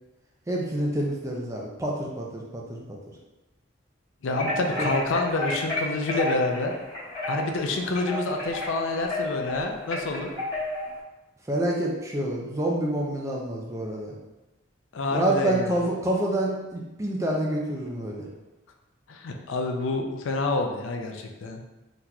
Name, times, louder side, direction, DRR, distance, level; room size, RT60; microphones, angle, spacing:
voice 1, 0.5-3.0 4.8-4.9 11.5-14.1 15.1-18.3, right 1 dB, 15° right, -2 dB, 0.4 m, -27 dB
voice 2, 4.2-6.7 7.3-10.3 14.9-15.8 19.1-21.6, left 2 dB, 80° left, 3 dB, 0.4 m, -28 dB
sound 1, 4.3-11.0, left 1 dB, 20° left, 1.4 m, -31 dB
3.9 x 2.9 x 2.3 m, 1.1 s
head